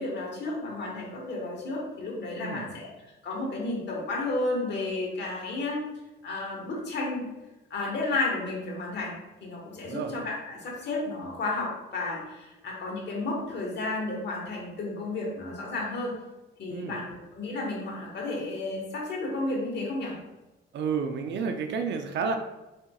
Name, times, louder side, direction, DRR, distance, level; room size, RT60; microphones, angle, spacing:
voice 1, 0.0-2.9 3.2-5.8 6.2-7.3 7.7-9.1 9.4-16.1 16.6-20.1, left 2 dB, 60° left, -2 dB, 1.4 m, -32 dB
voice 2, 2.4-2.7 9.7-10.1 16.7-17.0 20.7-22.4, right 5 dB, 65° right, 6 dB, 0.5 m, -31 dB
4.3 x 3.5 x 2.3 m, 1.0 s
cardioid pair, 90°, 20 cm